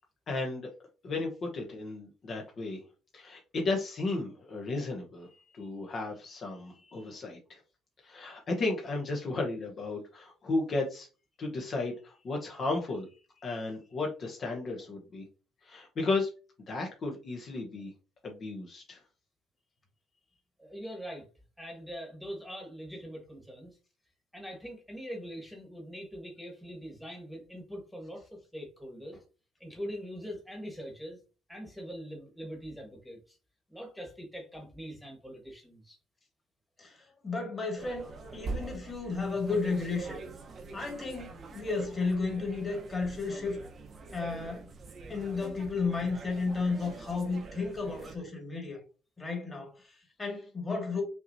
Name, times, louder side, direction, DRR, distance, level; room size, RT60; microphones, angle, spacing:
voice 1, 0.3-0.7 1.0-2.8 3.1-7.6 8.0-11.1 11.4-13.1 13.4-15.2 15.6-16.3 16.7-17.9 18.2-19.0, left 3 dB, 40° left, 1.0 m, -34 dB
voice 2, 20.6-21.3 21.6-23.8 24.3-29.2 29.6-31.2 31.5-33.4 33.7-36.0, equal, 5° left, 1.4 m, -43 dB
voice 3, 36.8-38.1 38.3-40.2 40.7-43.6 44.1-44.7 45.1-48.8 49.2-51.0, left 4 dB, 25° left, 1.8 m, -33 dB
sound 1, 37.8-48.2, right 3 dB, 40° right, 0.9 m, -44 dB
5.6 x 3.0 x 2.7 m
cardioid pair, 115°, 0 cm